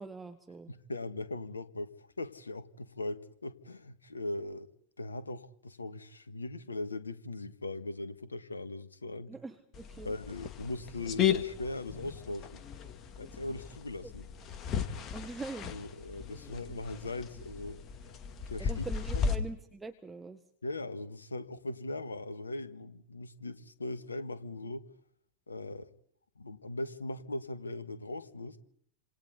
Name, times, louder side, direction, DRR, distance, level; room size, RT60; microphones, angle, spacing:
voice 1, 0.0-0.7 9.3-10.1 14.0-14.1 15.1-15.7 18.6-20.4, right 3 dB, 10° right, 7 dB, 1.7 m, -43 dB
voice 2, 0.7-4.7 5.0-9.3 10.0-12.6 13.2-14.2 15.7-17.8 18.5-18.9 19.2-19.3 20.6-24.8 25.5-25.9 26.4-28.6, left 2 dB, 75° left, 12 dB, 1.7 m, -39 dB
sound 1, 9.7-19.4, left 7 dB, 30° left, 2.2 m, -36 dB
28.0 x 27.0 x 4.2 m, 0.64 s
figure-of-eight pair, 90°, 0 cm